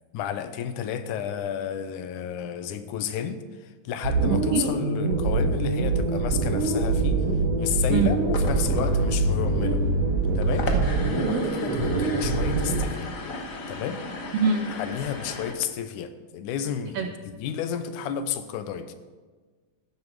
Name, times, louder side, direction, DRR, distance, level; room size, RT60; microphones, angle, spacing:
voice 1, 0.1-7.3 7.6-9.8 10.4-10.7 11.1-13.1 13.7-14.0 14.7-18.9, left 8 dB, 90° left, 10 dB, 2.3 m, -32 dB
sound 1, 4.0-12.8, right 3 dB, 60° right, 2.7 m, -24 dB
voice 2, 4.2-4.6 7.9-8.1 10.7-11.2 14.3-14.6 16.9-17.1, right 5 dB, 85° right, 7 dB, 1.4 m, -25 dB
sound 2, 8.2-15.5, left 3 dB, 65° left, 0.8 m, -37 dB
14.0 x 9.7 x 4.7 m, 1.4 s
omnidirectional pair, 3.4 m